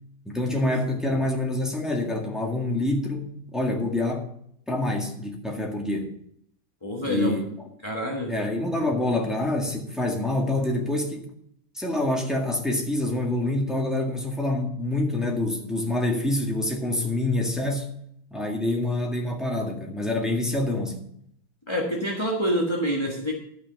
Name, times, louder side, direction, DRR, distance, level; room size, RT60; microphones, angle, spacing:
voice 1, 0.3-4.3 4.7-6.1 7.0-7.5 8.3-11.3 11.7-17.9 18.3-21.0, left 1 dB, ahead, 1.7 m, -26 dB
voice 2, 6.8-7.4 7.8-8.3 21.7-23.3, equal, 15° left, 1.2 m, -27 dB
12.0 x 6.1 x 6.6 m
omnidirectional pair, 2.2 m